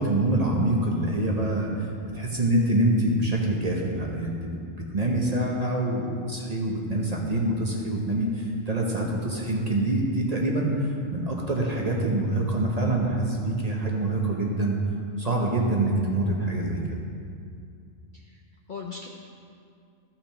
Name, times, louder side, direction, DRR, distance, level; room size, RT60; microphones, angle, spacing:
voice 1, 0.0-1.7 2.1-4.6 4.9-14.8 15.2-17.0, right 1 dB, 35° right, -1 dB, 0.9 m, -25 dB
voice 2, 5.2-5.6 18.1-18.4 18.7-19.1, left 5 dB, 50° left, 0 dB, 0.6 m, -39 dB
14.0 x 5.8 x 3.4 m, 2.4 s
omnidirectional pair, 1.4 m